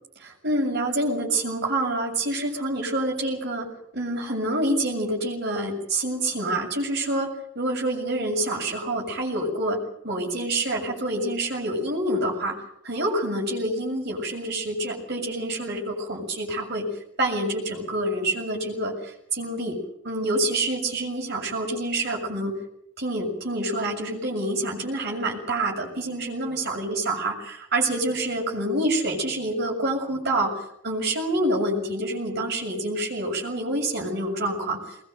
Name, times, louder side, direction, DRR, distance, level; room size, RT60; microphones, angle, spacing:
voice 1, 0.2-12.5 12.8-16.9 17.2-19.8 20.0-22.6 23.0-30.6 30.8-34.8, right 1 dB, 50° right, 0 dB, 7.2 m, -27 dB
21.5 x 21.5 x 8.0 m, 0.75 s
head